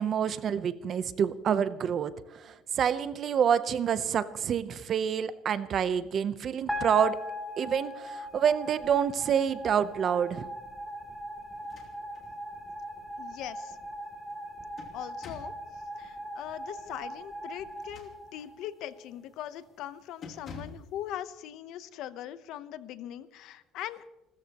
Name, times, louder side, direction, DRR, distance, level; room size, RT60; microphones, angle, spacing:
voice 1, 0.0-7.2 7.6-10.5, right 8 dB, 45° right, 14 dB, 0.7 m, -28 dB
sound 1, 6.7-19.0, equal, ahead, 3.0 m, -40 dB
sound 2, 11.6-12.3 12.7-12.8 14.3-15.6 17.7-18.6 19.1-19.3 19.6-19.8 20.2-20.9, left 4 dB, 45° left, 2.6 m, -48 dB
voice 2, 13.2-13.8 14.9-15.5 16.0-24.1, left 11 dB, 70° left, 13 dB, 0.9 m, -40 dB
29.0 x 13.5 x 3.0 m, 1.0 s
cardioid pair, 130°, 0 cm